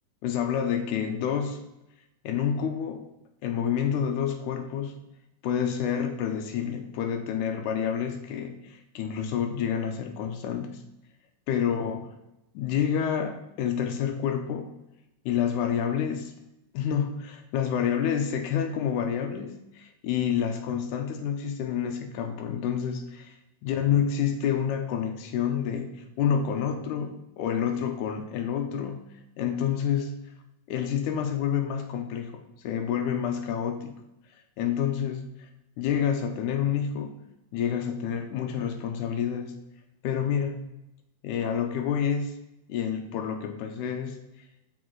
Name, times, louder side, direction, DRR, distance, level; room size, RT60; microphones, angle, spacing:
voice 1, 0.2-1.6 2.2-3.1 3.4-4.9 5.4-10.8 11.5-12.1 12.5-14.7 15.3-16.3 16.7-23.4 23.6-29.1 29.4-30.1 30.7-33.9 34.6-35.5 35.8-37.2 37.5-39.5 40.0-40.6 41.2-42.3 42.7-44.2, left 8 dB, 85° left, 5 dB, 1.7 m, -28 dB
6.2 x 5.5 x 4.5 m, 0.89 s
omnidirectional pair, 4.4 m